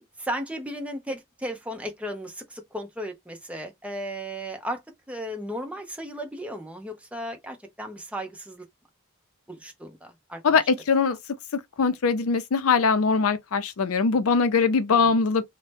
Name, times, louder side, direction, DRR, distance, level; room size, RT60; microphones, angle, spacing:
voice 1, 0.2-4.8 5.1-8.6 9.5-10.0 10.3-10.6 14.9-15.1, equal, 5° right, 0.7 m, -35 dB
voice 2, 10.4-11.2 11.8-15.4, left 5 dB, 70° left, 0.5 m, -22 dB
2.8 x 2.1 x 3.2 m
head